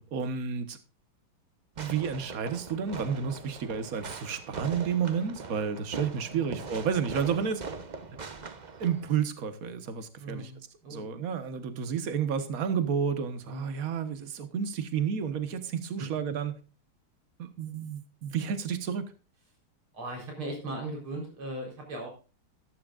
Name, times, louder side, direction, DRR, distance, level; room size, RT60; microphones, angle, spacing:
voice 1, 0.1-0.8 1.8-7.6 8.8-10.5 10.9-16.5 17.4-19.1, right 7 dB, 45° right, 1.6 m, -31 dB
Fireworks, 1.8-9.2, right 4 dB, 65° right, 0.4 m, -41 dB
voice 2, 10.2-11.3 13.5-13.8 16.0-16.1 19.9-22.1, right 2 dB, 85° right, 5.0 m, -38 dB
13.5 x 13.0 x 2.5 m
omnidirectional pair, 2.3 m